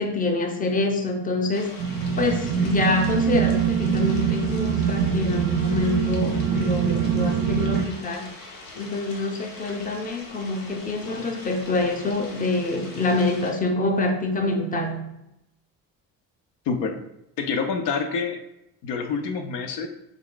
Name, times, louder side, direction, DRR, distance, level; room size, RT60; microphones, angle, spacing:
voice 1, 0.0-1.9 2.2-8.3 8.8-15.1, left 2 dB, 20° left, 4 dB, 0.6 m, -26 dB
sound 1, 1.5-13.5, left 2 dB, 90° left, 0.9 m, -42 dB
sound 2, 1.8-7.8, right 7 dB, 40° right, 0.4 m, -24 dB
voice 2, 16.7-17.0 17.4-18.4 18.8-19.9, left 5 dB, 70° left, 6 dB, 0.6 m, -27 dB
3.5 x 2.1 x 3.8 m, 0.85 s
supercardioid pair, 70°, 42 cm